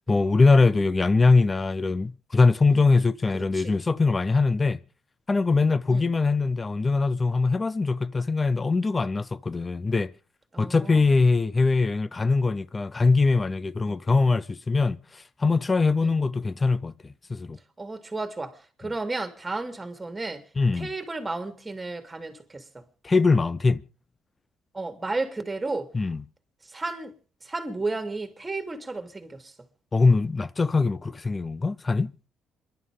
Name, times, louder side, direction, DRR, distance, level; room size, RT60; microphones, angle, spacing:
voice 1, 0.1-4.8 5.3-10.1 10.6-15.0 15.4-17.6 20.6-20.9 23.0-23.8 25.9-26.2 29.9-32.1, left 3 dB, 30° left, 0.7 m, -22 dB
voice 2, 3.3-3.7 5.9-6.1 10.5-11.1 13.9-14.0 16.0-16.2 17.8-20.4 20.7-22.8 24.7-25.9 26.6-27.1 27.4-29.5, right 3 dB, 20° right, 3.3 m, -33 dB
27.5 x 11.5 x 3.6 m
supercardioid pair, 60°, 0 cm